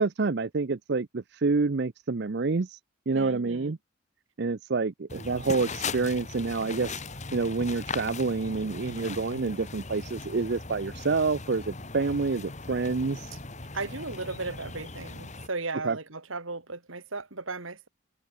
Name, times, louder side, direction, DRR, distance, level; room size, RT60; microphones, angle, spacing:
voice 1, 0.0-2.8 3.1-3.8 4.4-7.0 7.3-13.3 15.8-16.0, right 4 dB, 55° right, 0.6 m, -28 dB
voice 2, 3.1-3.7 13.7-17.9, right 3 dB, 70° right, 2.8 m, -36 dB
sound 1, 5.1-15.5, left 3 dB, 35° left, 2.3 m, -39 dB
head